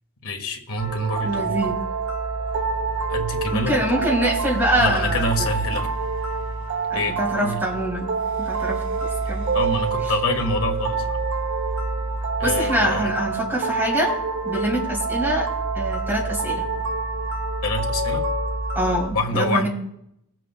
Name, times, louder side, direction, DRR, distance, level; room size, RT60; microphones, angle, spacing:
voice 1, 0.2-1.7 3.1-3.8 4.8-5.9 6.9-7.6 9.5-11.2 12.4-13.1 17.6-18.2 19.1-19.7, left 1 dB, 75° left, 3 dB, 1.5 m, -26 dB
sound 1, 0.8-19.1, right 4 dB, 55° right, 1.4 m, -26 dB
voice 2, 1.2-1.8 3.5-5.5 6.9-8.1 8.4-9.4 12.4-14.2 14.4-15.5 15.7-16.6 18.8-19.7, equal, 10° right, -5 dB, 3.4 m, -24 dB
22.0 x 7.7 x 2.2 m, 0.76 s
head